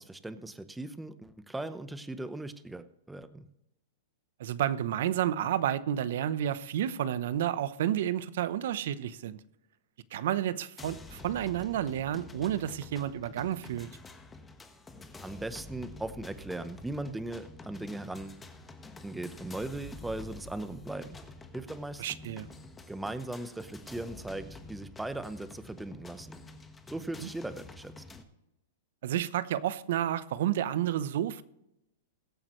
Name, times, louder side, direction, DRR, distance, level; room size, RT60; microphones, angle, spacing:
voice 1, 0.0-3.5 15.2-18.4 19.0-21.2 21.5-22.0 22.9-26.4 26.9-27.9, right 2 dB, 5° right, 0.8 m, -38 dB
voice 2, 4.4-9.4 10.1-13.9 22.0-22.5 27.2-27.3 29.0-31.4, right 11 dB, 65° right, 0.8 m, -30 dB
sound 1, 10.8-28.2, left 3 dB, 15° left, 1.3 m, -48 dB
21.5 x 8.8 x 3.1 m
hypercardioid pair, 135°, 0 cm